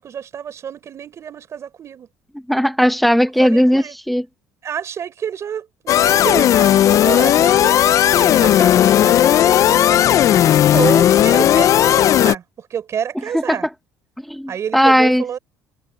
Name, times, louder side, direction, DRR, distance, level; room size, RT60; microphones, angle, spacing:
voice 1, 0.0-2.1 3.4-4.0 4.6-9.8 10.7-13.7 14.5-15.4, right 8 dB, 45° right, 4.2 m, -28 dB
voice 2, 2.5-4.2 13.5-13.6 14.2-15.4, equal, ahead, 1.1 m, -16 dB
sound 1, 5.9-12.4, left 11 dB, 55° left, 0.5 m, -14 dB
supercardioid pair, 95°, 7 cm